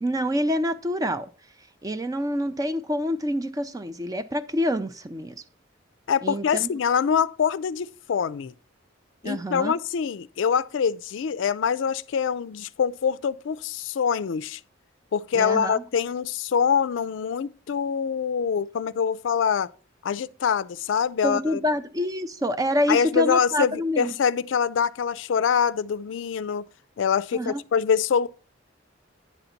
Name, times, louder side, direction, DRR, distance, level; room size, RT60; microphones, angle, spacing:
voice 1, 0.0-1.3 1.8-5.4 6.2-6.7 9.2-9.7 15.3-15.8 21.2-24.1 27.3-27.6, equal, 20° right, 0.4 m, -27 dB
voice 2, 6.1-8.5 9.2-14.6 15.1-19.7 20.0-21.6 22.9-26.7 27.0-28.3, left 7 dB, 70° left, 0.4 m, -24 dB
10.0 x 4.0 x 5.7 m
head